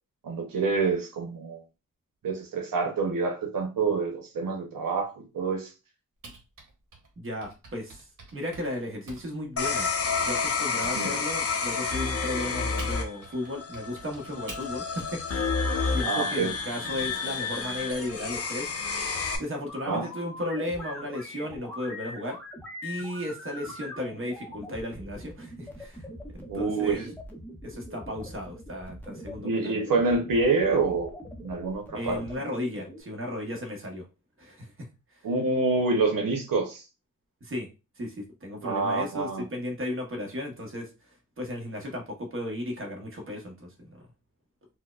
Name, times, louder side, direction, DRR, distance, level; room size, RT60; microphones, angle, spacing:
voice 1, 0.2-1.6 2.2-5.7 10.9-11.1 16.0-16.5 19.9-20.1 26.5-27.1 29.4-31.1 31.4-32.2 35.2-36.8 38.6-39.4, right 3 dB, 90° right, 0.8 m, -27 dB
Typing, 6.2-11.0 11.3-15.5, right 2 dB, 70° right, 1.1 m, -47 dB
voice 2, 7.2-9.9 10.2-19.0 19.4-22.4 22.8-26.1 26.3-27.1 27.6-29.8 31.9-34.1 34.4-34.9 37.4-37.7 38.0-40.9 41.4-44.0, left 1 dB, 40° right, 1.0 m, -35 dB
sound 1, 9.6-19.4, left 4 dB, 45° left, 0.6 m, -30 dB
sound 2, 19.7-33.0, left 1 dB, 5° left, 0.7 m, -43 dB
4.3 x 2.1 x 2.4 m
wide cardioid pair, 110°, 33 cm